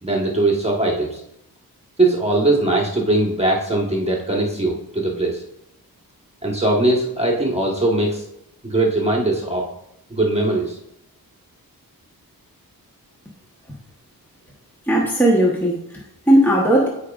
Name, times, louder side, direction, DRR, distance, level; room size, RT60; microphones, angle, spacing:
voice 1, 0.0-1.2 2.0-5.4 6.4-8.2 8.6-9.7 10.1-10.8, right 2 dB, 15° right, -2 dB, 1.2 m, -20 dB
voice 2, 14.8-16.9, right 1 dB, 5° left, -2 dB, 1.0 m, -17 dB
14.0 x 4.9 x 2.4 m, 0.80 s
wide cardioid pair, 170°, 36 cm